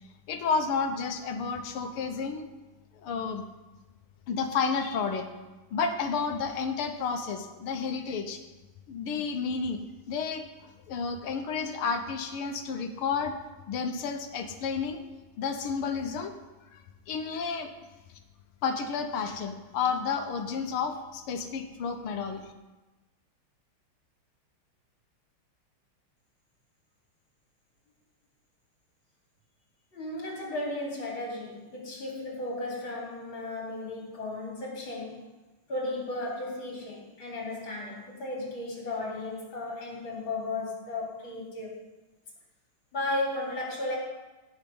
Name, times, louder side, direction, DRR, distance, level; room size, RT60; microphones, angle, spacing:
voice 1, 0.3-2.4 3.0-3.5 4.3-5.3 5.7-8.4 8.9-9.8 10.1-13.4 13.7-15.0 15.4-16.3 16.7-16.8 17.1-17.7 18.6-22.4, left 5 dB, 85° left, 7 dB, 2.0 m, -31 dB
voice 2, 29.9-35.2 35.7-41.7 42.9-44.0, left 2 dB, 65° left, -3 dB, 4.2 m, -35 dB
17.0 x 6.6 x 5.5 m, 1.1 s
omnidirectional pair, 2.3 m